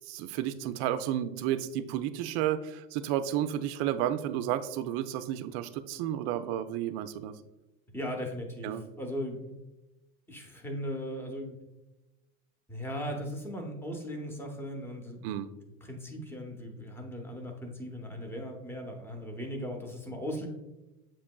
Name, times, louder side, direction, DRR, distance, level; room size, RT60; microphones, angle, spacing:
voice 1, 0.1-7.3 8.6-8.8 15.2-15.5, right 11 dB, 50° right, 12 dB, 0.4 m, -32 dB
voice 2, 7.9-9.6 10.3-11.6 12.7-15.4 15.8-20.5, equal, 5° left, 2 dB, 0.8 m, -38 dB
7.0 x 3.0 x 2.2 m, 1.0 s
hypercardioid pair, 90°, 44 cm